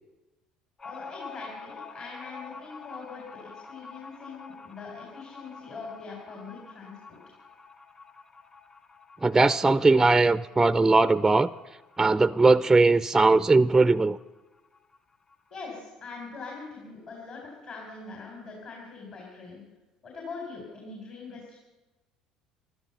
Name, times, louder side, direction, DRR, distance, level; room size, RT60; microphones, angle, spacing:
voice 1, 0.8-7.2 15.5-19.6 20.0-21.6, left 4 dB, 50° left, -1 dB, 4.0 m, -42 dB
sound 1, 0.8-13.9 14.2-14.3 14.6-15.4, left 4 dB, 30° left, 1.8 m, -47 dB
voice 2, 9.2-11.5 12.0-14.2, right 3 dB, 15° right, 17 dB, 0.4 m, -20 dB
14.0 x 12.0 x 6.8 m, 1.1 s
hypercardioid pair, 60°, 3 cm